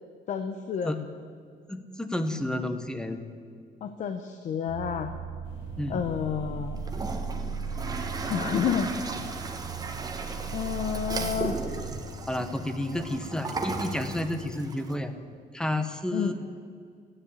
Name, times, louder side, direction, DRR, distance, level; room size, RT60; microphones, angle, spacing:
voice 1, 0.3-0.9 3.8-5.1 5.9-6.8 8.3-8.9 10.5-11.6 16.1-16.4, left 8 dB, 50° left, 8 dB, 0.8 m, -30 dB
voice 2, 1.7-3.2 5.8-6.0 12.3-15.1 15.5-16.3, left 1 dB, 5° left, 8 dB, 0.9 m, -31 dB
sound 1, 4.7-12.0, right 6 dB, 80° right, 1.5 m, -37 dB
sound 2, 5.4-14.4, left 2 dB, 85° left, 4.7 m, -45 dB
Toilet flush, 6.7-14.9, right 3 dB, 20° right, 1.2 m, -36 dB
14.5 x 10.0 x 8.9 m, 2.1 s
cardioid pair, 160°, 17 cm